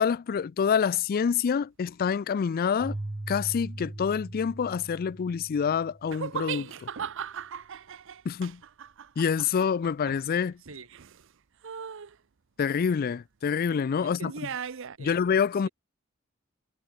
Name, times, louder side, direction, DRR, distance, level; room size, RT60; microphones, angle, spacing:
voice 1, 0.0-3.0 3.3-6.9 8.3-8.6 9.2-10.6 12.6-14.3 15.0-15.7, left 6 dB, 45° left, 0.3 m, -27 dB
Keyboard (musical), 2.8-6.3, right 1 dB, 20° right, 0.5 m, -39 dB
sound 1, 6.1-11.3 11.6-12.2 14.2-15.0, right 7 dB, 65° right, 0.7 m, -38 dB
voice 2, 10.6-10.9 14.0-15.2 15.5-15.7, right 3 dB, 85° right, 5.6 m, -49 dB
head